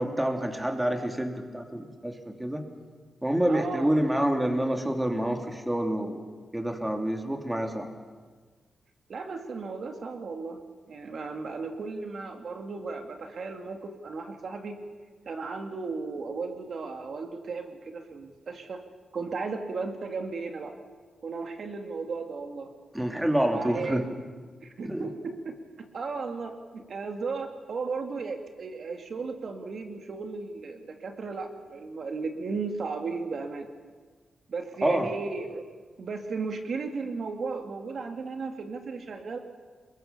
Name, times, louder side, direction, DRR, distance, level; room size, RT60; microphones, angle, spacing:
voice 1, 0.0-2.6 3.2-6.2 6.5-7.9 22.9-24.0 24.8-25.1 34.8-35.1, right 1 dB, 10° right, 4 dB, 3.0 m, -27 dB
voice 2, 3.5-4.0 9.1-10.6 10.9-14.8 15.3-18.8 19.1-20.7 21.2-22.7 23.5-24.0 24.6-33.7 34.5-35.7 36.0-39.4, right 4 dB, 60° right, 4 dB, 2.5 m, -35 dB
28.0 x 22.0 x 7.0 m, 1.5 s
cardioid pair, 90°, 0 cm